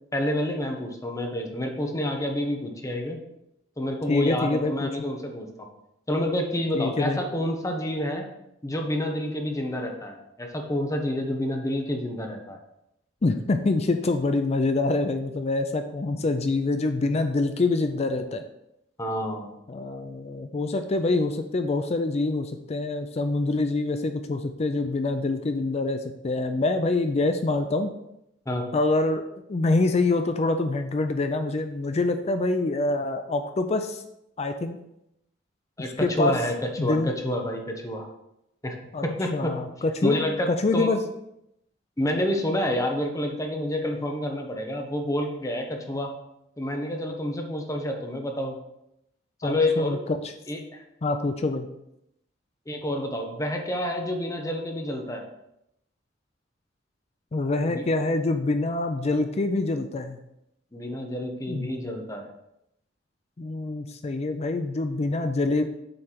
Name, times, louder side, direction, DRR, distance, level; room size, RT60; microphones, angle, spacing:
voice 1, 0.1-3.2 3.8-5.5 6.1-8.3 8.6-12.6 19.0-19.5 28.5-28.7 35.8-38.1 38.6-38.8 39.0-39.6 40.0-40.9 42.0-46.1 46.6-48.6 49.4-50.0 50.5-50.8 52.7-55.2 57.7-57.8 60.7-62.3, left 1 dB, 20° left, 3 dB, 0.9 m, -28 dB
voice 2, 4.1-4.9 6.7-7.2 13.2-18.4 19.7-27.9 28.7-29.2 29.5-34.0 34.4-34.8 36.0-36.3 36.8-37.1 38.9-39.0 39.3-40.2 40.5-41.0 49.4-50.2 51.0-51.7 57.3-60.2 61.5-61.7 63.4-65.6, left 2 dB, 35° left, 7 dB, 0.4 m, -25 dB
7.8 x 3.3 x 5.8 m, 0.82 s
head